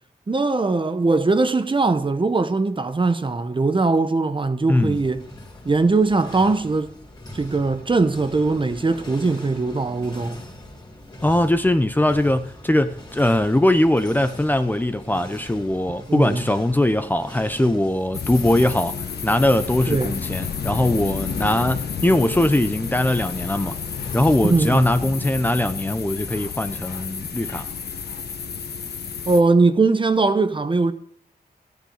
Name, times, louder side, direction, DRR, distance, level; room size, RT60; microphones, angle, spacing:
voice 1, 0.3-5.2 5.6-6.9 7.3-10.4 16.1-16.4 19.9-20.1 24.4-24.9 29.3-30.9, right 3 dB, 30° right, 1.0 m, -20 dB
sound 1, 4.8-24.4, left 1 dB, 25° left, 3.3 m, -41 dB
voice 2, 11.2-19.0 19.2-23.8 24.1-27.7, left 1 dB, 10° left, 0.7 m, -21 dB
sound 2, 18.1-29.4, left 6 dB, 75° left, 1.2 m, -31 dB
14.0 x 9.4 x 4.9 m
wide cardioid pair, 95°, 17 cm